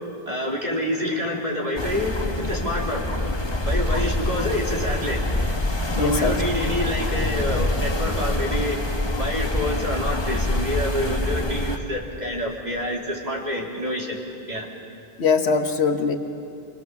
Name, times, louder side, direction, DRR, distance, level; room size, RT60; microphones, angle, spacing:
voice 1, 0.3-3.0 3.7-5.2 5.9-8.9 9.2-14.2 14.5-14.7, equal, 45° right, -3 dB, 3.7 m, -27 dB
sound 1, 1.8-11.8, left 2 dB, 25° left, 1.3 m, -25 dB
voice 2, 6.0-6.4 15.2-16.1, left 5 dB, 90° left, 6 dB, 1.6 m, -21 dB
26.5 x 25.5 x 7.1 m, 2.5 s
omnidirectional pair, 1.1 m